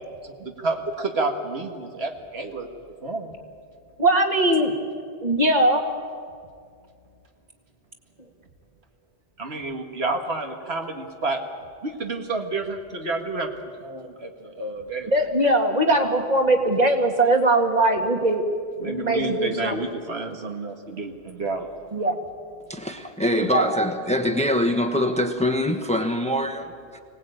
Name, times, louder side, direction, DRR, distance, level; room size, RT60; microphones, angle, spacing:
voice 1, 0.2-2.7 3.0-3.4 9.4-11.4 11.8-13.5 13.8-15.1 18.8-21.7, right 3 dB, 75° right, 4 dB, 2.0 m, -30 dB
voice 2, 4.0-4.7 5.2-5.8 15.1-18.4 18.8-19.8 21.9-22.2 23.3-23.7, right 1 dB, 40° right, 3 dB, 2.2 m, -20 dB
voice 3, 22.7-27.0, left 1 dB, 5° left, 7 dB, 1.1 m, -24 dB
25.0 x 18.5 x 8.9 m, 2.2 s
omnidirectional pair, 1.1 m